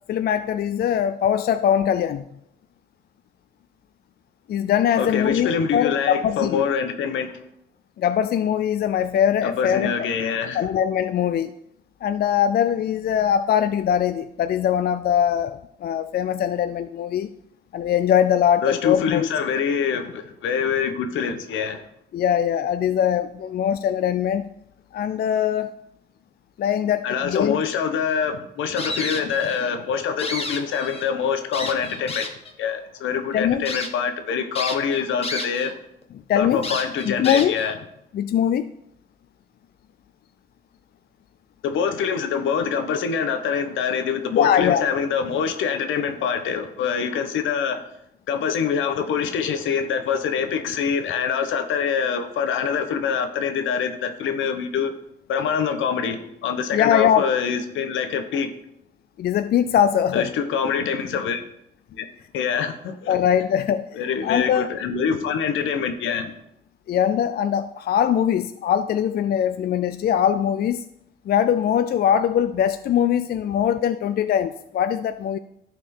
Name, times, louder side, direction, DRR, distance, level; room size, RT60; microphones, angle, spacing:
voice 1, 0.1-2.2 4.5-6.6 8.0-10.1 10.5-11.5 12.0-17.3 17.7-19.3 22.1-24.4 24.9-25.7 26.6-27.6 33.3-33.6 36.3-36.6 37.1-37.6 38.1-38.7 44.3-44.9 56.7-57.3 59.2-60.3 63.1-63.9 64.2-64.7 66.9-70.8 71.3-75.4, left 9 dB, 50° left, 11 dB, 0.4 m, -21 dB
voice 2, 5.0-7.3 9.4-10.6 18.6-21.8 27.0-35.7 36.3-37.7 41.6-47.8 48.3-54.9 55.3-58.5 60.1-61.4 62.0-62.1 62.3-63.2 63.9-66.3, left 6 dB, 80° left, 8 dB, 1.0 m, -25 dB
sound 1, 28.8-29.7 30.0-31.1 31.5-32.5 33.1-33.2 33.7-33.9 34.6-35.7 36.0-36.1 36.6-37.7, left 3 dB, 30° left, 1.2 m, -31 dB
12.0 x 4.5 x 4.3 m, 0.77 s
cardioid pair, 90°, 20 cm